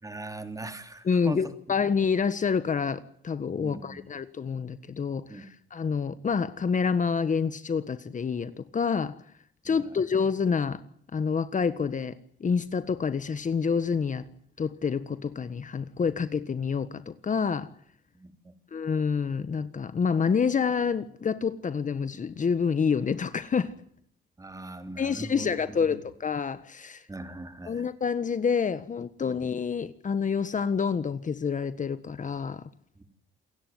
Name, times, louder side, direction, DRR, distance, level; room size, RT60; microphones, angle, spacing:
voice 1, 0.0-1.4 3.6-4.0 5.3-5.5 9.7-10.0 18.1-18.5 24.4-25.5 27.1-27.9 33.0-33.1, right 2 dB, 15° right, 3.7 m, -40 dB
voice 2, 1.0-9.2 9.6-10.8 11.1-14.3 14.6-17.7 18.7-23.7 25.0-27.0 27.7-32.6, left 6 dB, 40° left, 1.5 m, -28 dB
28.5 x 16.5 x 9.5 m
cardioid pair, 90°, 20 cm